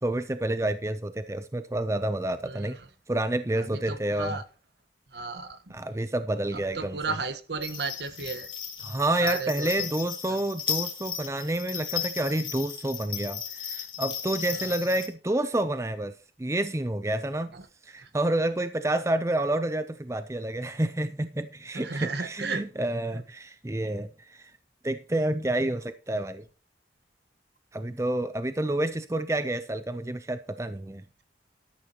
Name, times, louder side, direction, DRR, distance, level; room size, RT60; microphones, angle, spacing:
voice 1, 0.0-2.8 3.1-4.4 5.7-7.2 8.8-17.5 17.8-24.5 24.8-26.4 27.7-31.0, right 1 dB, 15° right, 0.5 m, -29 dB
voice 2, 3.6-4.4 5.1-5.6 6.5-8.5 9.2-9.9 10.3-10.4 14.6-14.7 17.5-17.6 18.0-18.1 21.7-22.6 23.1-23.2, right 4 dB, 65° right, 1.3 m, -34 dB
sound 1, 7.6-15.1, left 8 dB, 25° left, 2.3 m, -35 dB
12.5 x 11.5 x 2.9 m
head